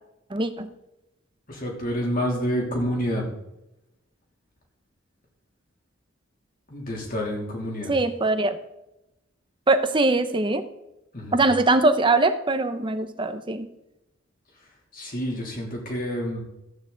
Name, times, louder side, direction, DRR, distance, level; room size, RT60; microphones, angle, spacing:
voice 1, 0.3-0.7 7.9-8.6 9.7-10.7 11.3-13.7, right 2 dB, 25° right, 10 dB, 0.8 m, -22 dB
voice 2, 1.5-3.2 6.7-7.9 11.1-11.4 14.9-16.4, equal, 45° left, -1 dB, 2.9 m, -28 dB
14.5 x 8.8 x 3.9 m, 0.90 s
head